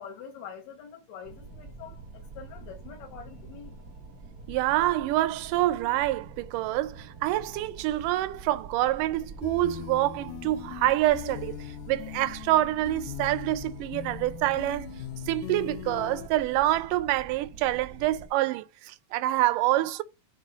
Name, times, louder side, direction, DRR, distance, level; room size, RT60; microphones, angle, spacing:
voice 1, 0.0-3.8, left 7 dB, 65° left, 2.0 m, -45 dB
sound 1, 1.2-18.3, right 4 dB, 55° right, 1.0 m, -46 dB
voice 2, 4.5-14.9 15.3-20.0, right 15 dB, 85° right, 2.2 m, -26 dB
sound 2, 9.4-16.3, left 13 dB, 85° left, 1.6 m, -40 dB
6.8 x 3.7 x 5.1 m
omnidirectional pair, 3.7 m